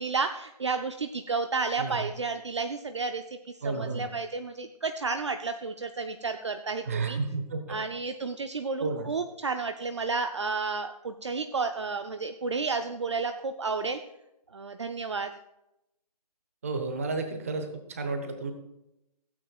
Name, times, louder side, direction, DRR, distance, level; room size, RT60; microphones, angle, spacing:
voice 1, 0.0-3.2 3.6-7.2 7.7-14.0 14.5-15.3, right 4 dB, 45° right, 7 dB, 0.5 m, -31 dB
voice 2, 3.6-4.1 6.9-7.8 8.8-9.1 16.6-18.5, right 3 dB, 20° right, 6 dB, 0.9 m, -32 dB
16.0 x 8.7 x 2.4 m, 0.87 s
hypercardioid pair, 175°, 21 cm